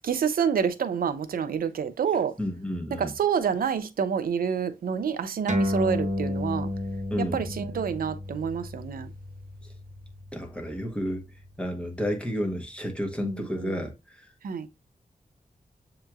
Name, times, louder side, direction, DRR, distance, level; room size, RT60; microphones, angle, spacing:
voice 1, 0.0-2.3 3.0-6.7 7.2-9.1 13.2-13.9 14.4-14.7, right 7 dB, 90° right, 0.5 m, -28 dB
voice 2, 2.4-3.1 7.1-7.4 10.3-11.2 11.6-13.9, equal, 5° left, 0.9 m, -31 dB
sound 1, 5.5-12.3, left 1 dB, 55° right, 0.9 m, -33 dB
7.2 x 2.9 x 2.3 m
wide cardioid pair, 115°, 15 cm